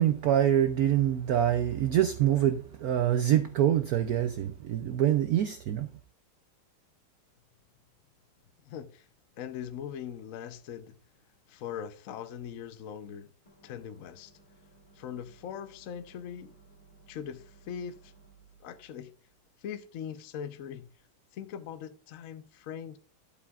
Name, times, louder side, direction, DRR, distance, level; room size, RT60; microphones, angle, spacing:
voice 1, 0.0-5.9, right 11 dB, 80° right, 0.8 m, -25 dB
voice 2, 8.6-9.1 9.4-11.0 11.5-13.3 13.6-14.3 14.9-16.5 17.1-18.1 18.6-19.1 19.6-20.9 21.3-23.0, left 8 dB, 65° left, 0.8 m, -41 dB
sound 1, 13.5-20.5, right 4 dB, 25° left, 1.3 m, -60 dB
11.5 x 8.3 x 2.4 m
omnidirectional pair, 2.2 m